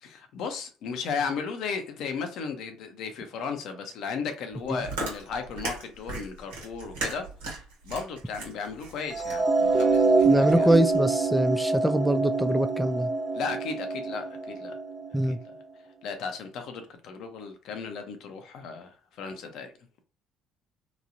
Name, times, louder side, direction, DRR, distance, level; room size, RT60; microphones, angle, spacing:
voice 1, 0.0-7.3 7.8-10.7 13.3-14.8 16.0-19.7, left 5 dB, 65° left, 0.7 m, -35 dB
Chewing mastication, 4.5-11.0, right 2 dB, 85° right, 1.2 m, -38 dB
sound 1, 9.1-15.3, right 3 dB, 30° right, 1.0 m, -25 dB
voice 2, 10.2-13.1 15.1-15.4, right 1 dB, 5° right, 0.3 m, -24 dB
3.0 x 2.3 x 2.6 m
hypercardioid pair, 65°, 0 cm